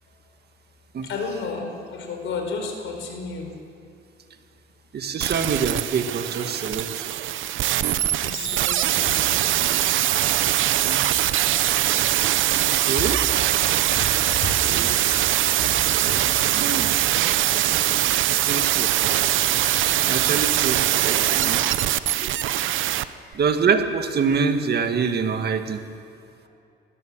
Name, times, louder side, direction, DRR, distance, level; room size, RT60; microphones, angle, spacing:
voice 1, 1.0-3.5 7.9-9.6 13.9-14.5 23.1-23.4, left 4 dB, 75° left, 3 dB, 4.7 m, -33 dB
voice 2, 4.9-7.3 10.8-11.1 12.5-13.2 14.6-14.9 15.2-17.1 18.3-18.9 20.1-21.8 22.1-23.0 23.3-25.8, right 5 dB, 55° right, 7 dB, 1.8 m, -26 dB
sound 1, 5.2-23.0 23.3-23.4, right 13 dB, 80° right, 0.8 m, -22 dB
20.5 x 18.0 x 7.5 m, 2.5 s
cardioid pair, 90°, 20 cm